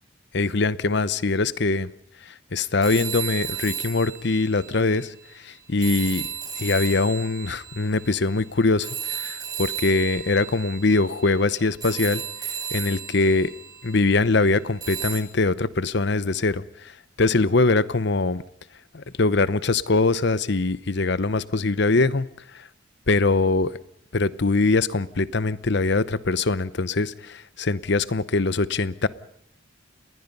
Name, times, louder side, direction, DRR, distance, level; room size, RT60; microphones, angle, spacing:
voice 1, 0.3-1.9 2.2-6.3 6.6-13.5 13.8-18.4 18.9-22.3 22.5-22.7 23.1-23.8 24.1-29.1, left 3 dB, 55° left, 0.8 m, -23 dB
sound 1, 2.8-5.3 5.8-14.3 14.8-15.2, right 8 dB, 20° right, 3.8 m, -34 dB
28.0 x 20.5 x 5.5 m
head